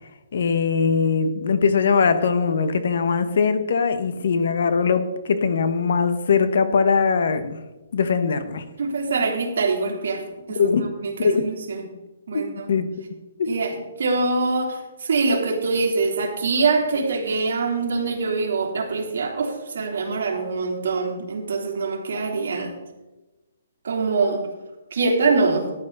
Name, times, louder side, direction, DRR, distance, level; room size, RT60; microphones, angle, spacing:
voice 1, 0.3-7.6 7.9-8.6 10.5-10.8 11.2-11.4 12.3-12.4 12.7-12.9 13.4-13.5, left 5 dB, 60° left, 11 dB, 1.2 m, -21 dB
voice 2, 8.8-10.2 10.5-10.7 11.0-11.9 12.3-12.7 13.5-13.7 14.0-22.7 23.8-24.5 24.9-25.7, right 4 dB, 65° right, 1 dB, 3.1 m, -24 dB
14.0 x 10.5 x 4.0 m, 1.1 s
hypercardioid pair, 170°, 0 cm